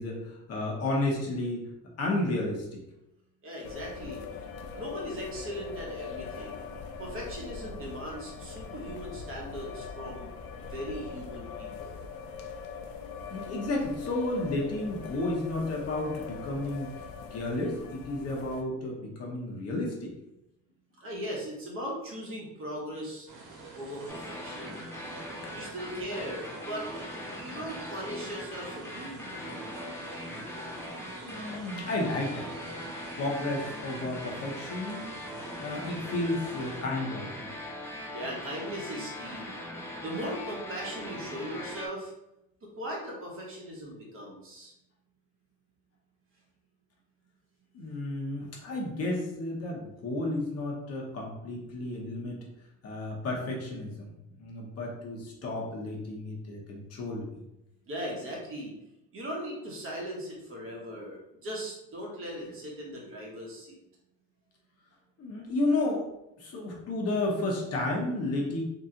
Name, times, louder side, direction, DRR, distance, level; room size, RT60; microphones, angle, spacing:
voice 1, 0.0-1.7 2.0-2.8 13.3-16.9 17.3-20.1 25.4-25.5 31.2-32.5 33.2-35.0 35.6-37.5 47.7-52.4 52.8-54.1 54.4-57.3 65.2-66.1 66.4-68.6, left 2 dB, 40° left, -2 dB, 0.9 m, -32 dB
voice 2, 3.4-4.2 4.7-6.7 7.0-12.0 21.0-23.3 23.7-24.7 25.5-26.9 27.1-29.7 38.1-39.5 40.0-42.1 42.6-44.7 57.9-58.7 59.1-63.8, equal, 35° right, -3 dB, 1.0 m, -39 dB
sound 1, 3.6-18.6, left 5 dB, 65° left, 0.6 m, -42 dB
sound 2, 23.3-37.0, right 3 dB, 60° right, 1.2 m, -47 dB
sound 3, 24.1-41.9, left 1 dB, 5° left, 0.4 m, -41 dB
3.0 x 2.8 x 3.7 m, 0.87 s
cardioid pair, 165°, 37 cm